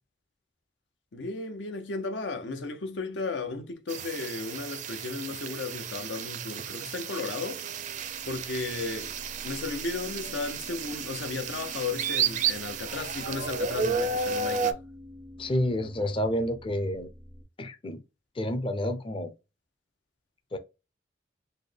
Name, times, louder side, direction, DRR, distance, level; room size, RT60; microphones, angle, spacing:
voice 1, 1.1-7.6 8.2-9.1 9.4-14.8, left 3 dB, 90° left, 0.7 m, -34 dB
sound 1, 3.9-14.7, right 5 dB, 45° right, 0.4 m, -32 dB
sound 2, 7.3-17.4, left 1 dB, 60° left, 1.4 m, -49 dB
voice 2, 15.4-17.1 17.6-18.0 18.4-19.3 20.5-20.6, left 1 dB, 30° left, 0.5 m, -29 dB
4.2 x 2.2 x 3.3 m
head